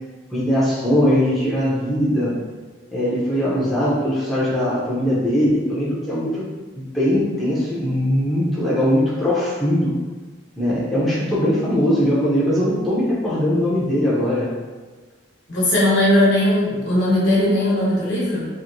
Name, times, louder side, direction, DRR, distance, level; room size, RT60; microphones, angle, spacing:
voice 1, 0.3-2.4 2.9-6.5 6.8-9.9 10.6-14.5, equal, ahead, -9 dB, 0.6 m, -20 dB
voice 2, 15.5-18.5, left 1 dB, 65° left, -7 dB, 1.1 m, -18 dB
3.0 x 2.6 x 2.6 m, 1.4 s
head